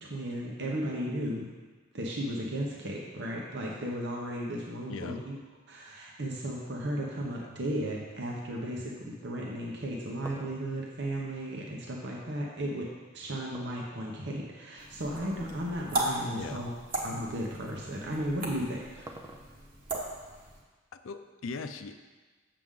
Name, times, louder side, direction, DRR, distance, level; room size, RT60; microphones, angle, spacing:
voice 1, 0.0-1.5 1.9-5.4 5.7-12.9 13.1-16.7 17.0-19.1, right 1 dB, 60° right, -2 dB, 1.0 m, -35 dB
voice 2, 4.9-5.3 7.3-7.6 16.3-16.7 20.9-22.0, left 4 dB, 70° left, 8 dB, 0.5 m, -40 dB
sound 1, 9.7-12.2 13.5-14.4 15.1-15.6 15.9-16.0 16.8-16.9 18.3-19.8, right 1 dB, 15° right, 0.5 m, -48 dB
sound 2, 14.8-20.6, right 2 dB, 45° right, 1.3 m, -37 dB
7.6 x 6.9 x 3.7 m, 1.3 s
head